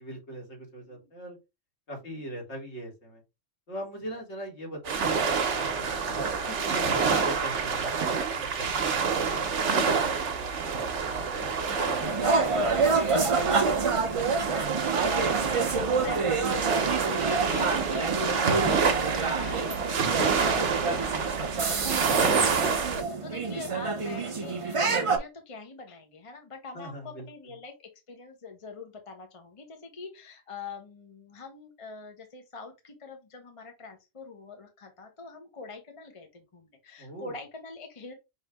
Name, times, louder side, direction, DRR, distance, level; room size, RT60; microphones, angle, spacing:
voice 1, 0.0-1.4 1.9-3.2 3.7-8.7 9.8-12.8 13.1-14.3 26.7-27.5 37.0-37.3, right 1 dB, 65° left, 0 dB, 2.1 m, -41 dB
voice 2, 0.8-1.1 10.6-10.7 11.4-11.8 16.0-16.7 17.2-22.8 23.2-38.1, left 4 dB, 30° left, 4 dB, 0.8 m, -44 dB
sound 1, 4.8-23.0, right 5 dB, 70° right, 1.1 m, -28 dB
sound 2, 12.0-25.2, right 4 dB, 35° right, 0.5 m, -28 dB
5.5 x 2.6 x 3.4 m, 0.24 s
omnidirectional pair, 1.3 m